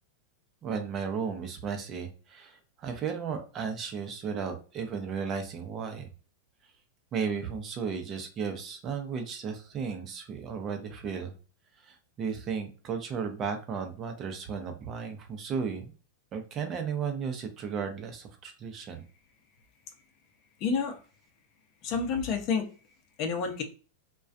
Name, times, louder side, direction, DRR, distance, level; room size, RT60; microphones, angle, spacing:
voice 1, 0.6-6.1 7.1-11.3 11.8-15.9 16.3-19.0, right 6 dB, 35° right, 5 dB, 0.6 m, -34 dB
voice 2, 20.6-21.0 21.8-22.7 23.2-23.6, left 5 dB, 45° left, 5 dB, 0.6 m, -29 dB
2.3 x 2.2 x 2.5 m, 0.37 s
hypercardioid pair, 125°, 0 cm